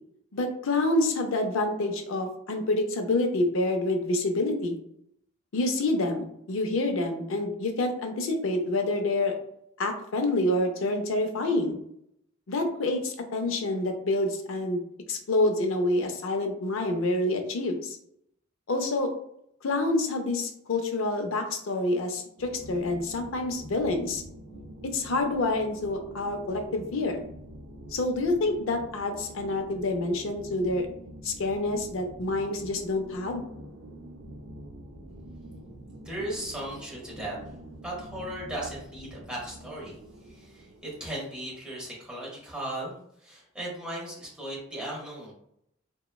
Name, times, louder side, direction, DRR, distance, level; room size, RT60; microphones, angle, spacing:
voice 1, 0.3-4.8 5.5-9.3 9.8-11.8 12.5-14.8 15.1-18.0 18.7-19.1 19.6-24.2 24.8-27.2 27.9-30.9 31.2-33.5, left 2 dB, 70° left, 4 dB, 0.5 m, -27 dB
sound 1, 22.4-41.0, right 1 dB, 75° right, 0.4 m, -45 dB
voice 2, 36.0-37.4 37.8-39.9 40.3-45.3, right 1 dB, 5° right, -6 dB, 1.0 m, -37 dB
3.0 x 2.1 x 2.2 m, 0.73 s
head